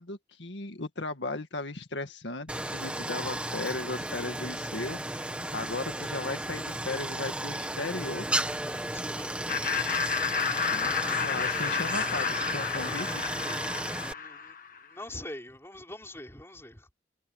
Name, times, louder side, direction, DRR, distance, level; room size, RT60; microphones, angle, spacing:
voice 1, 0.0-8.3 10.7-10.9 11.2-13.2, left 3 dB, 90° left, 1.9 m, -36 dB
Stream, 2.5-14.1, right 1 dB, 5° right, 1.4 m, -34 dB
voice 2, 8.6-9.5 13.9-14.6 14.8-16.9, left 1 dB, 15° left, 5.1 m, -44 dB
Laughter, 9.5-14.8, left 6 dB, 50° left, 1.6 m, -31 dB
head